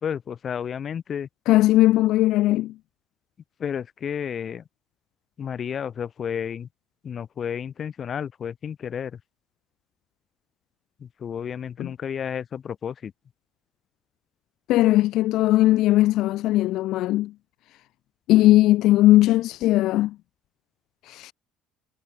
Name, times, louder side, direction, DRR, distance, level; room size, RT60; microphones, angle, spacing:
voice 1, 0.0-1.3 3.6-4.6 5.4-6.7 7.0-9.2 11.0-13.1, left 8 dB, 35° left, 4.0 m, -31 dB
voice 2, 1.5-2.7 11.8-11.9 14.7-17.3 18.3-20.1 21.0-21.3, left 16 dB, 55° left, 1.0 m, -19 dB
figure-of-eight pair, 55°, 0 cm